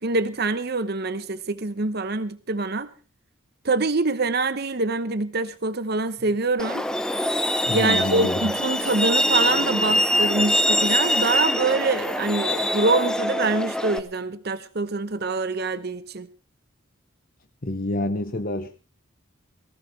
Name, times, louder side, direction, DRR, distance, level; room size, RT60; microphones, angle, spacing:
voice 1, 0.0-2.9 3.6-6.9 7.7-16.3, right 3 dB, 50° right, 0.9 m, -25 dB
Truck, 6.6-14.0, equal, 5° left, 0.8 m, -23 dB
voice 2, 7.7-8.4 17.6-18.8, left 1 dB, 45° left, 1.0 m, -27 dB
19.5 x 16.5 x 3.3 m
head